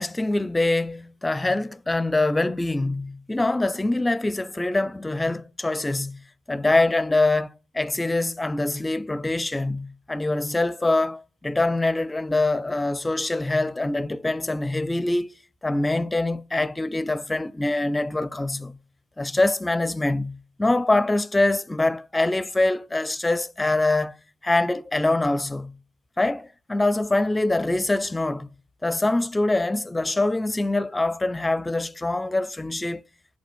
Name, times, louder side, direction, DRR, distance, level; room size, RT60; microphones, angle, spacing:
voice 1, 0.0-15.3 15.6-18.8 19.2-24.2 24.4-25.8 26.2-28.5 28.8-33.0, left 2 dB, 15° left, 0.5 m, -24 dB
9.2 x 5.4 x 6.1 m
supercardioid pair, 60°, 0 cm